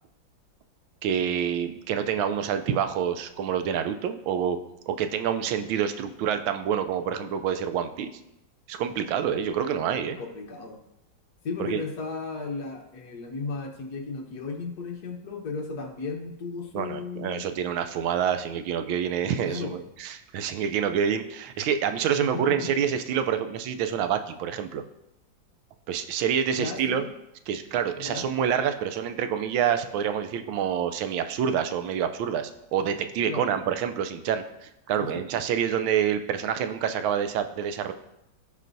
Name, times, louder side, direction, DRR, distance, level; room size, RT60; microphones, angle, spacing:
voice 1, 1.0-4.6 4.9-8.1 8.7-10.2 11.6-11.8 16.7-24.8 25.9-27.0 27.5-37.9, right 8 dB, 80° right, 8 dB, 1.4 m, -27 dB
voice 2, 10.2-10.8 11.4-17.5 19.2-19.7 22.2-22.7 26.5-27.1 28.0-28.3 33.3-33.6 35.0-35.3, left 4 dB, 60° left, 2 dB, 1.4 m, -35 dB
15.5 x 5.3 x 2.7 m, 0.84 s
omnidirectional pair, 2.2 m